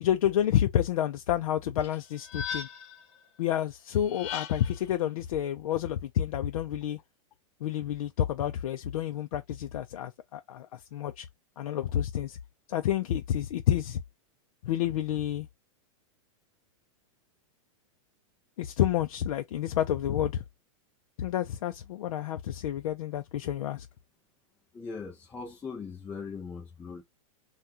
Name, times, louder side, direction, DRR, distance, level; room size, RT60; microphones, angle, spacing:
voice 1, 0.0-2.7 3.4-7.0 7.6-11.3 11.6-12.4 12.7-14.0 14.6-15.5 18.6-20.4 21.2-23.9, left 11 dB, 85° left, 0.5 m, -29 dB
sound 1, 1.8-3.0 4.0-4.8, left 7 dB, 35° left, 0.7 m, -38 dB
voice 2, 24.7-27.0, left 5 dB, 10° left, 0.3 m, -40 dB
2.8 x 2.3 x 3.5 m
supercardioid pair, 160°, 17 cm